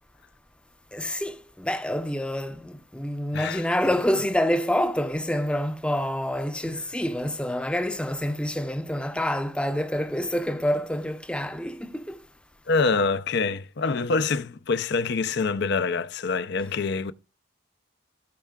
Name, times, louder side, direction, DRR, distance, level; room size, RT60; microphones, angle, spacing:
voice 1, 0.9-2.5 2.9-11.7, left 1 dB, 5° left, 0.6 m, -27 dB
voice 2, 3.3-3.7 6.6-6.8 12.7-17.1, left 4 dB, 55° left, 0.5 m, -25 dB
16.0 x 5.5 x 2.3 m
head